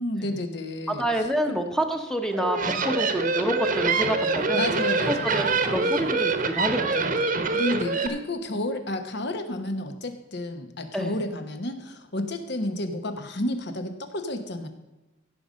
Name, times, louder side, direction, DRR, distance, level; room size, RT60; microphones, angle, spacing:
voice 1, 0.0-1.1 1.5-1.6 4.5-5.7 7.5-14.7, left 1 dB, 60° left, 8 dB, 1.2 m, -31 dB
voice 2, 0.9-4.6 5.1-7.2 10.9-11.1, equal, 5° left, 5 dB, 0.9 m, -28 dB
sound 1, 2.3-8.1, right 4 dB, 40° right, 1.0 m, -25 dB
16.0 x 5.4 x 6.3 m, 1.1 s
head